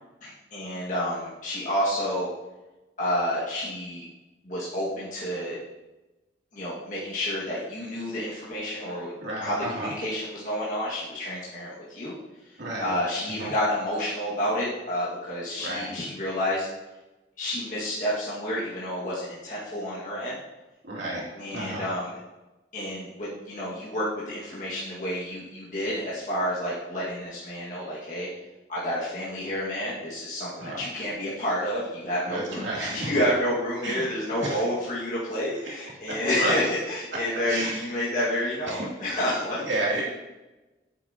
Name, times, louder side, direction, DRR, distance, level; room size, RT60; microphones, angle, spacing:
voice 1, 0.2-2.3 3.0-4.0 4.4-5.6 6.5-9.1 9.4-12.1 12.5-16.7 17.4-20.4 21.3-22.1 22.7-28.3 28.7-39.6, equal, 45° left, -7 dB, 1.7 m, -29 dB
voice 2, 9.2-9.9 12.6-12.9 13.4-13.5 15.6-15.9 20.8-21.2 21.5-21.8 30.6-30.8 32.3-33.2 33.8-34.1 34.4-34.6 36.1-36.5 37.5-37.8 38.7-38.9 39.6-40.0, right 1 dB, 75° right, -5 dB, 2.6 m, -31 dB
8.7 x 8.2 x 2.8 m, 1.1 s
head